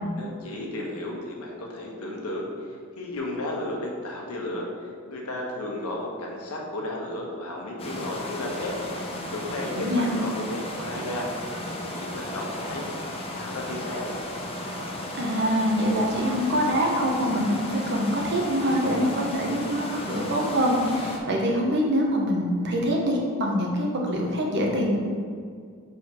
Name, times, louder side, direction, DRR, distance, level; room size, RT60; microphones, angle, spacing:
voice 1, 0.1-4.6 5.1-8.8 9.3-12.9 13.3-14.1, left 1 dB, 85° left, -1 dB, 1.1 m, -34 dB
sound 1, 7.8-21.2, left 1 dB, 25° left, 0.6 m, -35 dB
voice 2, 9.7-10.1 15.1-25.0, equal, 50° right, -1 dB, 1.0 m, -24 dB
4.7 x 4.4 x 4.8 m, 2.1 s
head